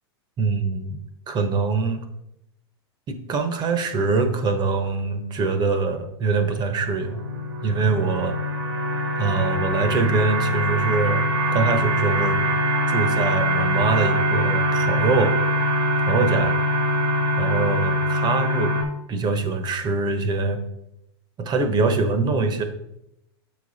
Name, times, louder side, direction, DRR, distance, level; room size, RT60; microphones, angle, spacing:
voice 1, 0.4-1.0 1.3-2.0 3.1-7.2 7.6-8.4 9.2-11.2 11.5-12.4 12.9-15.4 16.1-16.6 17.4-18.7 19.1-20.6 21.4-22.6, right 4 dB, 30° right, 8 dB, 1.0 m, -23 dB
sound 1, 6.8-18.8, equal, 90° right, 2.0 m, -23 dB
7.4 x 5.2 x 4.1 m, 0.82 s
hypercardioid pair, 115°, 14 cm